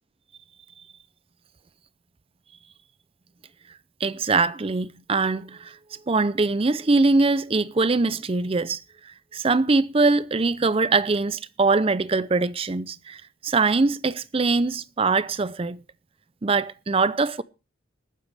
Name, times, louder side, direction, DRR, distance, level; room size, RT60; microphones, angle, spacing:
voice 1, 4.0-5.8 6.1-8.8 9.0-15.8 16.4-17.4, right 3 dB, 30° right, 0.5 m, -22 dB
20.0 x 9.2 x 3.4 m
head